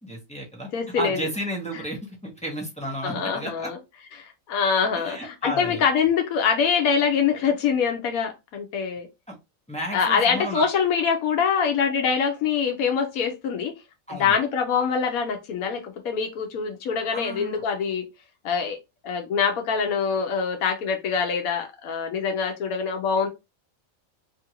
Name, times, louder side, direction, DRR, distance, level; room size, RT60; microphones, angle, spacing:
voice 1, 0.0-0.7 0.9-3.7 4.9-5.8 9.3-9.4 9.7-10.7 14.1-14.4 17.1-17.6, right 1 dB, 5° left, 0.7 m, -33 dB
voice 2, 0.7-1.2 3.0-3.8 4.2-9.1 9.9-13.7 14.1-18.0 18.4-18.8 19.0-23.3, left 6 dB, 85° left, 1.1 m, -24 dB
3.0 x 2.5 x 2.8 m
omnidirectional pair, 1.5 m